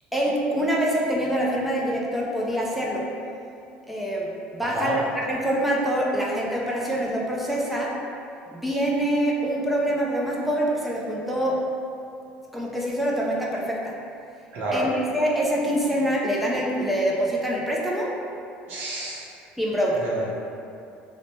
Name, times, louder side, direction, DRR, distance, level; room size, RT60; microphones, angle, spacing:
voice 1, 0.1-3.1 3.9-7.9 8.5-11.6 12.5-14.0 14.7-18.1 19.6-20.0, right 1 dB, 5° right, -4 dB, 0.4 m, -25 dB
voice 2, 14.5-14.9 18.7-19.2 20.0-20.3, right 1 dB, 55° right, -5 dB, 0.6 m, -29 dB
3.0 x 2.1 x 4.0 m, 2.6 s
cardioid pair, 140°, 4 cm